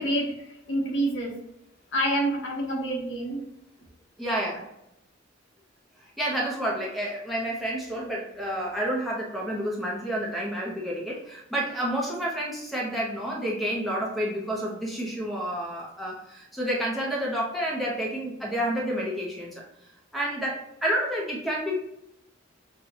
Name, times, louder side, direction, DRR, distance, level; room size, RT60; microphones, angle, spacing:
voice 1, 0.0-1.4 1.9-3.4, right 1 dB, 70° left, -1 dB, 1.0 m, -27 dB
voice 2, 4.2-4.6 6.2-19.6 20.1-21.8, equal, ahead, -4 dB, 0.6 m, -29 dB
5.5 x 2.2 x 2.7 m, 0.84 s
head